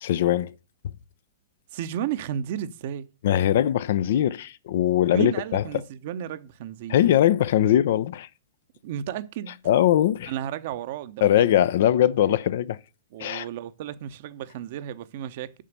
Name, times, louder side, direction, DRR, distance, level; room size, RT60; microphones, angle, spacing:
voice 1, 0.0-0.5 3.2-5.6 6.9-8.3 9.7-10.3 11.2-12.8 13.2-13.4, left 11 dB, 55° left, 0.5 m, -21 dB
voice 2, 1.7-3.1 5.1-7.0 8.8-9.6 10.3-11.5 13.1-15.5, right 10 dB, 50° right, 0.8 m, -33 dB
7.4 x 5.8 x 6.7 m
figure-of-eight pair, 110°, 0 cm